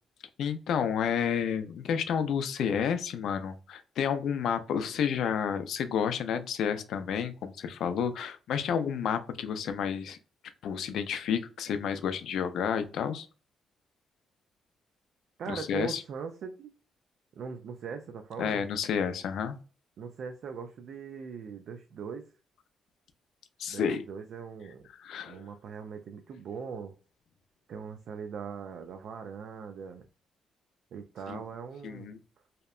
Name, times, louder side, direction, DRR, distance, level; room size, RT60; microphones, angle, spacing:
voice 1, 0.4-10.2 10.6-13.3 15.5-16.0 18.4-19.6 23.6-24.0 25.0-25.4 31.3-31.4 31.8-32.2, left 7 dB, 70° left, 10 dB, 0.4 m, -30 dB
voice 2, 15.4-16.7 17.4-18.7 20.0-22.3 23.7-24.9 25.2-26.9 27.7-30.0 30.9-32.1, right 6 dB, 60° right, 5 dB, 0.3 m, -40 dB
2.8 x 2.1 x 2.3 m, 0.36 s
cardioid pair, 165°, 0 cm